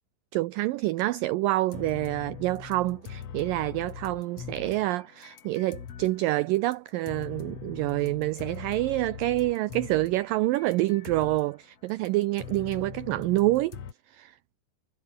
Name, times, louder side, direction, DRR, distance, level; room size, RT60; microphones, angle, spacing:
voice 1, 0.3-13.8 14.1-14.3, right 18 dB, 80° right, 2.0 m, -27 dB
sound 1, 1.7-6.2 6.6-11.6 11.9-13.9, left 8 dB, 45° left, 2.4 m, -42 dB
omnidirectional pair, 4.7 m